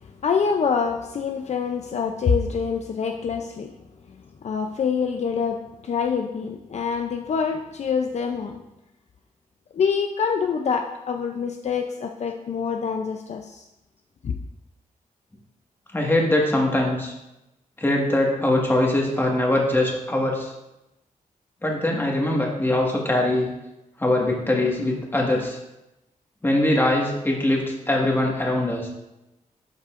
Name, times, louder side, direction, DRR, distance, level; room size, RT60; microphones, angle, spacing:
voice 1, 0.0-3.7 4.4-8.6 9.7-13.7 14.2-14.3, left 6 dB, 55° left, 4 dB, 0.5 m, -25 dB
voice 2, 15.9-17.1 17.8-20.5 21.6-23.5 24.0-25.6 26.4-28.9, left 1 dB, 15° left, -1 dB, 1.6 m, -22 dB
12.0 x 5.4 x 2.5 m, 0.93 s
wide cardioid pair, 105°, 14 cm